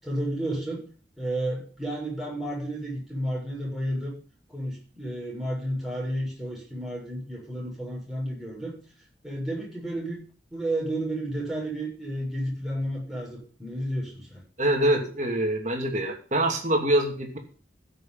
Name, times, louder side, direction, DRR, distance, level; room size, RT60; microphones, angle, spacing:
voice 1, 0.0-0.8 1.2-4.1 4.5-8.7 9.2-10.2 10.5-14.4, right 1 dB, ahead, -4 dB, 6.8 m, -31 dB
voice 2, 14.6-17.4, right 1 dB, 40° right, 3 dB, 2.7 m, -25 dB
15.5 x 6.4 x 5.8 m, 0.40 s
head